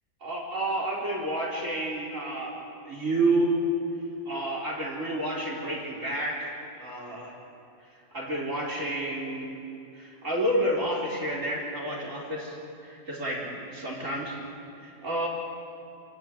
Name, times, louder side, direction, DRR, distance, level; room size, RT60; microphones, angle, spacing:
voice 1, 0.2-2.5 2.9-3.5 4.3-7.3 8.1-9.5 9.9-12.6 12.8-14.4 14.8-15.3, right 1 dB, 65° right, -3 dB, 4.3 m, -30 dB
28.0 x 14.0 x 9.2 m, 2.8 s
omnidirectional pair, 1.5 m